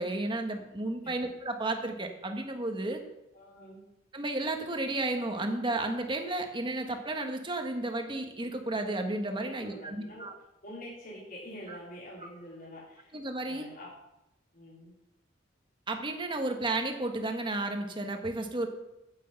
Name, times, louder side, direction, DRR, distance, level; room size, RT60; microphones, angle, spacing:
voice 1, 0.0-3.0 4.1-10.3 11.7-11.8 12.2-12.3 13.1-13.7 15.9-18.7, right 2 dB, 25° right, 4 dB, 1.4 m, -33 dB
voice 2, 3.3-3.8 9.4-10.3 10.6-13.1 13.4-13.9 14.5-14.9, equal, 50° left, -6 dB, 3.9 m, -46 dB
9.7 x 8.2 x 7.8 m, 0.90 s
head